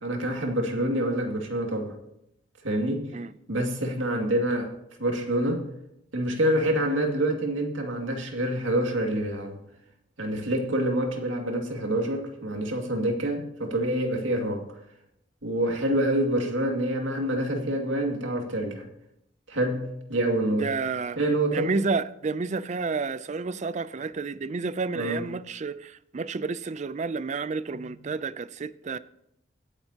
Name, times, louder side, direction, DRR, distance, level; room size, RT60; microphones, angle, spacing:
voice 1, 0.0-2.0 2.6-3.1 3.5-4.7 5.0-5.6 6.1-9.6 10.2-14.7 15.4-18.9 19.5-20.8 21.2-21.7 24.9-25.2, right 1 dB, 90° right, 2.3 m, -27 dB
voice 2, 20.5-21.2 21.5-29.0, right 4 dB, 40° right, 0.4 m, -30 dB
24.5 x 8.9 x 2.9 m
head